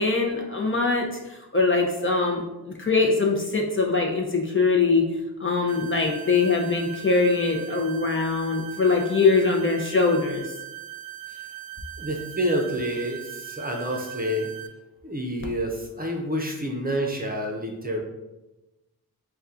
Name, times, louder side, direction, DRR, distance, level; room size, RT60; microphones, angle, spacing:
voice 1, 0.0-5.1 5.4-10.4, left 4 dB, 30° left, 0 dB, 0.7 m, -22 dB
sound 1, 5.7-14.7, right 12 dB, 65° right, 0.6 m, -40 dB
voice 2, 12.0-14.5 15.0-18.0, equal, 25° right, 0 dB, 0.7 m, -28 dB
4.1 x 2.3 x 3.6 m, 1.0 s
wide cardioid pair, 60°, 39 cm